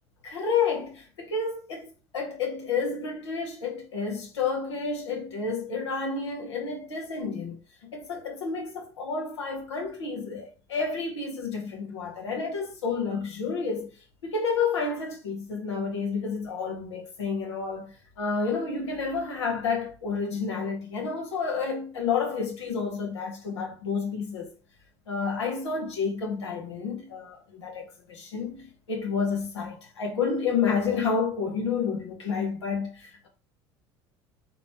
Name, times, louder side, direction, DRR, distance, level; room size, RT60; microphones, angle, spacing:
voice 1, 0.2-1.9 2.1-7.6 7.8-13.9 14.2-24.5 25.1-33.3, left 5 dB, 75° left, 1.2 m, -30 dB
5.0 x 3.1 x 3.0 m
figure-of-eight pair, 65°, 15 cm